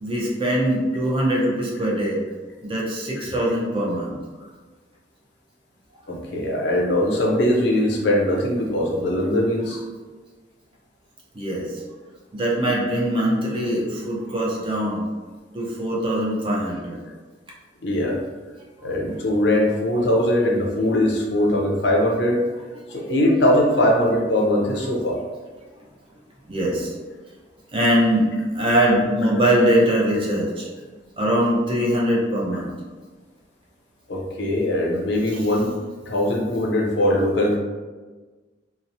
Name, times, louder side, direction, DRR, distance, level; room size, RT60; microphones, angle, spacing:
voice 1, 0.0-2.2 2.6-4.2 11.3-11.8 12.3-15.0 15.5-17.0 22.9-23.0 26.5-26.9 27.7-30.7 31.2-32.7 35.3-35.5, equal, 30° right, -4 dB, 0.6 m, -22 dB
voice 2, 6.1-9.8 13.2-13.3 17.8-18.2 18.8-22.4 22.9-25.2 34.1-35.7 36.1-37.6, left 1 dB, 70° left, -1 dB, 0.5 m, -21 dB
2.9 x 2.1 x 2.6 m, 1.3 s
head